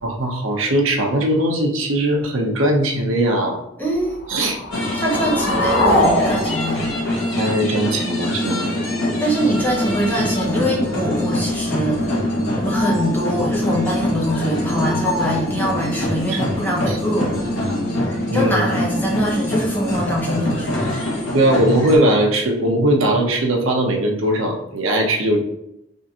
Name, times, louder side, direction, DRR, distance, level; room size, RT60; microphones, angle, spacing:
voice 1, 0.0-3.6 4.3-4.6 7.2-9.2 16.3-16.4 16.9-17.0 18.3-18.7 21.3-25.4, right 1 dB, 85° right, 2 dB, 0.7 m, -19 dB
voice 2, 3.8-4.2 4.9-6.9 9.2-17.4 18.3-20.9, equal, 10° left, -3 dB, 0.7 m, -23 dB
sound 1, 4.2-8.2, left 1 dB, 55° left, 0.8 m, -22 dB
sound 2, 4.7-22.0, left 1 dB, 75° left, 1.2 m, -24 dB
3.6 x 2.5 x 2.8 m, 0.82 s
head